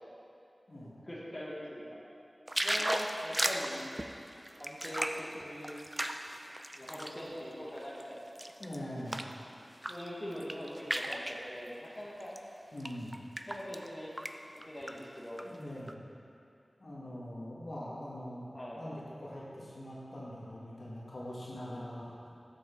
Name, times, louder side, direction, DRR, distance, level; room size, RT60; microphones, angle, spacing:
voice 1, 1.0-2.0 2.6-3.8 4.6-5.7 6.7-8.2 8.6-8.7 9.9-12.3 13.5-14.1 14.5-15.5 18.5-18.9, equal, 30° left, -7 dB, 1.3 m, -42 dB
sound 1, 2.5-7.2 7.7-9.4 9.7-10.1 10.3-11.4 12.2-12.4 12.8-13.9 14.2-14.3 14.6-15.4 15.9-16.0, right 1 dB, 20° right, 0.4 m, -36 dB
voice 2, 8.6-9.3 12.7-13.2 15.4-16.0 16.8-18.5 18.7-22.3, equal, 65° left, -7 dB, 1.6 m, -43 dB
7.1 x 6.0 x 4.4 m, 2.6 s
wide cardioid pair, 60°, 0 cm